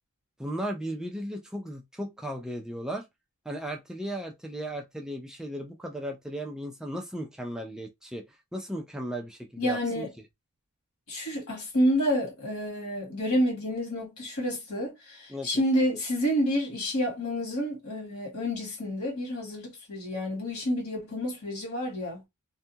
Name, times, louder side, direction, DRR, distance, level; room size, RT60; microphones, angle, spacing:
voice 1, 0.4-3.1 3.5-10.1 15.3-15.5, equal, 5° right, 0.3 m, -36 dB
voice 2, 9.6-10.1 11.1-22.2, equal, 75° left, 1.6 m, -29 dB
2.6 x 2.3 x 2.7 m
head